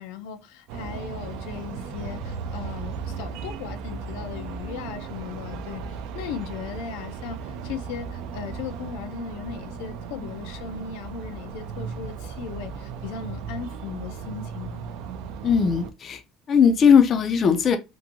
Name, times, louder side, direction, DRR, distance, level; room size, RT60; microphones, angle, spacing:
voice 1, 0.0-14.9, left 7 dB, 85° left, 0.5 m, -37 dB
Traffic in Almaty city, 0.7-15.9, right 5 dB, 65° right, 0.3 m, -36 dB
voice 2, 15.4-16.2 16.5-17.8, left 7 dB, 25° left, 0.3 m, -18 dB
2.7 x 2.6 x 2.6 m
cardioid pair, 175°, 0 cm